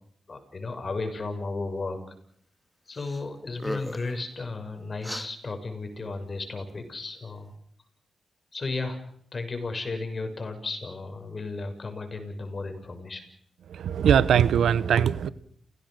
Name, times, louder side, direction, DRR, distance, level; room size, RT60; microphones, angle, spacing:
voice 1, 0.3-2.0 2.9-7.5 8.5-9.0 9.3-13.2, left 3 dB, 45° left, 6.6 m, -34 dB
sound 1, 3.0-3.2 3.5-4.2 5.0-5.3, left 1 dB, 5° left, 2.3 m, -35 dB
voice 2, 13.7-15.3, right 8 dB, 80° right, 1.0 m, -21 dB
30.0 x 17.5 x 6.7 m
cardioid pair, 55°, 0 cm